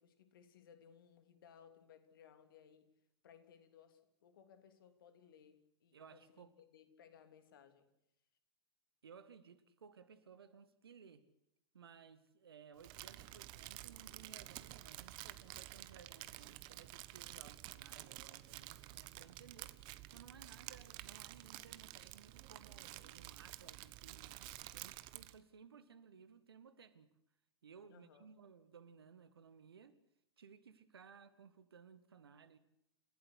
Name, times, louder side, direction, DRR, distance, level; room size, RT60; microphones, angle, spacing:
voice 1, 0.0-2.9 3.2-7.9 27.9-28.3, left 8 dB, 55° left, 3.1 m, -63 dB
voice 2, 5.9-6.5 9.0-11.2 11.7-19.8 20.1-27.1 27.6-30.0 30.4-32.6, right 6 dB, 65° right, 2.1 m, -59 dB
Crumpling crinkling, 12.8-25.4, right 17 dB, 35° right, 1.2 m, -51 dB
29.5 x 16.0 x 8.3 m
figure-of-eight pair, 100°, 14 cm